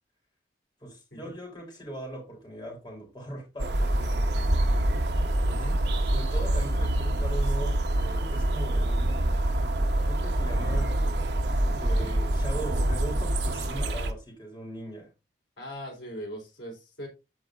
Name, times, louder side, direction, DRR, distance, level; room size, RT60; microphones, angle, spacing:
voice 1, 0.8-4.6 5.4-5.6 5.9-11.0 11.6-15.1, right 1 dB, 25° left, 3.6 m, -40 dB
sound 1, 3.6-14.1, right 1 dB, 70° right, 1.0 m, -26 dB
voice 2, 15.6-17.1, equal, 80° left, 4.1 m, -40 dB
14.0 x 4.8 x 2.6 m
head